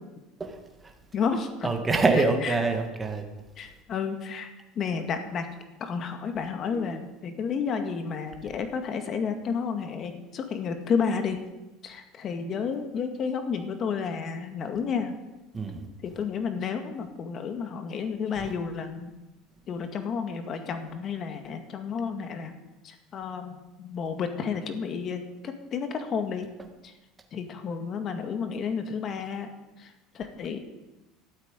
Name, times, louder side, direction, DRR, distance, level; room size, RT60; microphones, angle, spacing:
voice 1, 0.4-0.9 1.6-3.2 6.7-7.0 15.5-15.8 18.4-18.5, right 3 dB, 15° right, 4 dB, 2.2 m, -26 dB
voice 2, 1.1-1.7 2.2-2.5 3.6-4.5 4.8-5.5 5.8-11.4 11.8-15.2 16.0-19.1 19.7-22.5 22.8-26.5 26.8-26.9 27.3-29.5 29.8-30.6, left 6 dB, 35° left, 7 dB, 2.0 m, -31 dB
13.0 x 9.0 x 9.1 m, 1.1 s
supercardioid pair, 130°, 0 cm